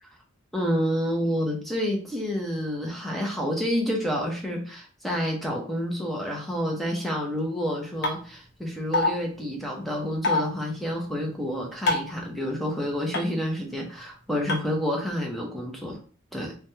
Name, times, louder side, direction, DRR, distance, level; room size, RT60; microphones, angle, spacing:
voice 1, 0.5-16.0 16.3-16.5, equal, ahead, -1 dB, 0.5 m, -29 dB
sound 1, 8.0-8.1 8.9-9.1 10.2-10.4 11.9-12.1 13.1-13.2 14.5-14.6, left 2 dB, 50° left, 0.8 m, -22 dB
3.1 x 2.2 x 2.7 m, 0.40 s
head